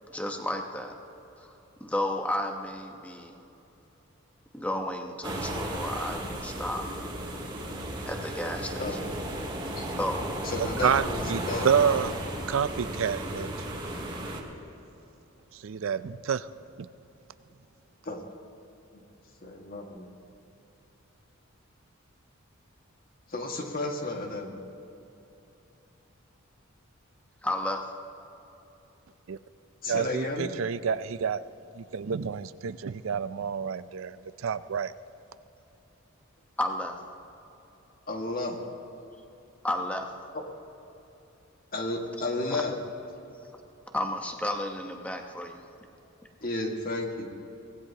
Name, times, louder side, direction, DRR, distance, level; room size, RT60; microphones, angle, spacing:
voice 1, 0.1-1.0 1.4-3.4 4.5-6.9 8.1-9.0 10.0-10.4 27.4-27.9 36.6-37.0 39.6-40.1 43.9-45.6, left 1 dB, 5° left, 3 dB, 1.0 m, -32 dB
sound 1, 5.2-14.4, right 1 dB, 25° right, 1.9 m, -34 dB
voice 2, 10.4-11.7 18.0-18.2 19.4-20.1 23.3-24.6 29.8-30.5 38.1-38.6 40.3-40.4 41.7-42.7 46.4-47.3, left 2 dB, 45° left, 1 dB, 1.8 m, -32 dB
voice 3, 11.3-12.1 12.5-13.5 15.6-16.4 29.3-29.4 29.9-31.4 31.8-34.2 34.4-34.9, right 7 dB, 70° right, 14 dB, 0.4 m, -28 dB
24.5 x 18.5 x 2.9 m, 3.0 s
head